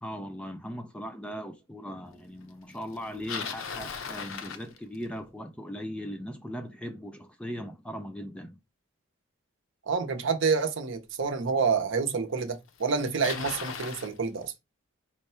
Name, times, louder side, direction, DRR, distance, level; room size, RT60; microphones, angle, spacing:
voice 1, 0.0-8.6, equal, 5° left, 0.3 m, -39 dB
Bicycle, 2.9-5.3 10.3-10.4 11.3-11.4 12.4-12.5 12.7-14.1, left 6 dB, 70° left, 0.6 m, -38 dB
voice 2, 9.9-14.5, right 5 dB, 60° right, 0.7 m, -28 dB
4.5 x 2.2 x 4.2 m
head